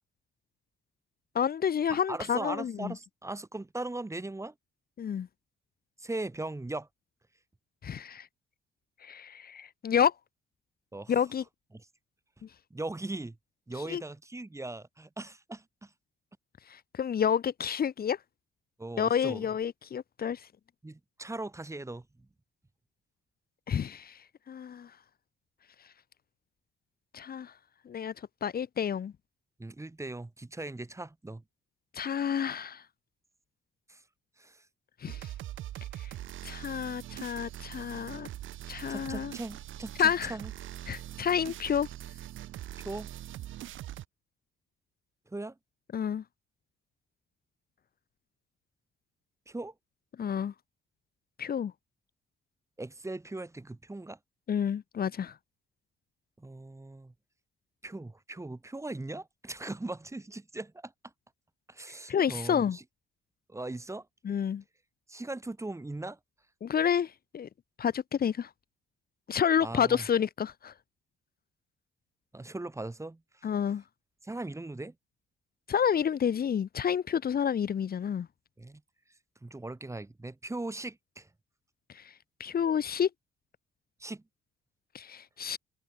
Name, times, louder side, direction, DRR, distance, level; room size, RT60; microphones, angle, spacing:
voice 1, 1.3-2.9 5.0-5.3 7.8-8.3 9.0-10.1 11.1-11.4 13.9-14.0 16.7-18.2 19.0-20.4 23.7-24.2 24.5-24.9 27.1-27.5 27.9-28.1 28.4-29.1 31.9-32.8 35.0-35.3 36.0-36.1 36.4-38.3 38.7-39.3 40.0-40.3 40.9-41.9 45.9-46.2 50.2-50.5 51.4-51.7 54.5-55.3 62.1-62.8 64.2-64.6 66.6-67.5 67.8-68.5 69.3-70.7 73.4-73.8 75.7-78.3 81.9-82.0 82.4-83.1 84.9-85.6, left 8 dB, 50° left, 1.5 m, -29 dB
voice 2, 2.1-4.5 6.0-6.9 10.9-11.2 11.7-11.9 12.7-13.4 13.7-15.9 18.8-19.5 20.8-22.3 29.6-31.4 33.9-34.0 34.4-34.6 38.9-40.5 41.1-41.2 42.8-43.1 45.3-45.5 49.5-49.7 52.8-54.2 56.4-57.1 57.8-60.9 61.7-62.8 63.5-64.1 65.1-66.2 69.6-70.1 72.3-73.5 74.2-74.9 78.6-78.8 79.4-81.3 84.0-84.2, right 2 dB, 15° right, 3.3 m, -39 dB
sound 1, 35.1-44.1, right 13 dB, 80° right, 3.8 m, -42 dB
cardioid pair, 90°, 20 cm